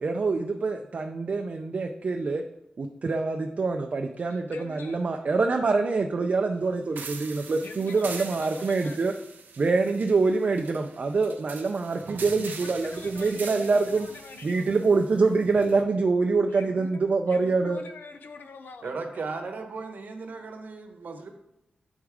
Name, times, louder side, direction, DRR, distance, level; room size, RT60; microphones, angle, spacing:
voice 1, 0.0-2.4 2.8-9.1 9.6-14.1 14.4-17.8, right 4 dB, 45° right, 3 dB, 0.4 m, -25 dB
voice 2, 4.5-5.0 7.6-9.2 12.3-14.8 16.5-19.0, left 4 dB, 85° left, 8 dB, 0.5 m, -45 dB
sound 1, 7.0-15.8, right 4 dB, 90° right, 0.7 m, -43 dB
voice 3, 18.8-21.3, right 4 dB, 65° right, 4 dB, 1.0 m, -36 dB
7.2 x 4.8 x 3.5 m, 0.86 s
wide cardioid pair, 130°, 3 cm